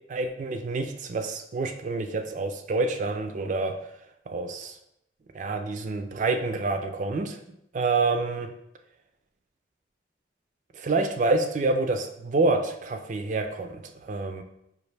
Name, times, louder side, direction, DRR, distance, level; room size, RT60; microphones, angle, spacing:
voice 1, 0.1-3.8 4.3-4.8 5.3-7.4 7.7-8.5 10.7-14.4, right 3 dB, 45° right, 6 dB, 0.4 m, -27 dB
5.2 x 2.6 x 3.2 m, 0.78 s
head